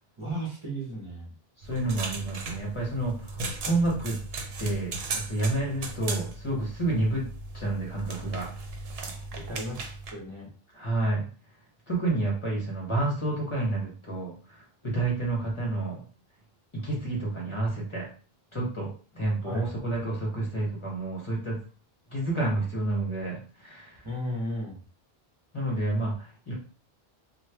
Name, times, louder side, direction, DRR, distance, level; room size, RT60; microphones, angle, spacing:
voice 1, 0.2-1.3 9.3-9.8 10.1-10.5 19.4-19.7 24.0-24.8, equal, 30° right, -4 dB, 1.0 m, -34 dB
voice 2, 1.6-4.2 4.6-7.3 7.5-8.5 10.7-11.3 11.9-16.0 16.7-18.1 18.5-21.6 22.1-24.1 25.5-26.5, right 2 dB, 30° left, -4 dB, 0.9 m, -29 dB
sound 1, 1.6-10.1, right 3 dB, 75° right, 0.9 m, -37 dB
3.1 x 2.2 x 3.2 m, 0.40 s
omnidirectional pair, 1.0 m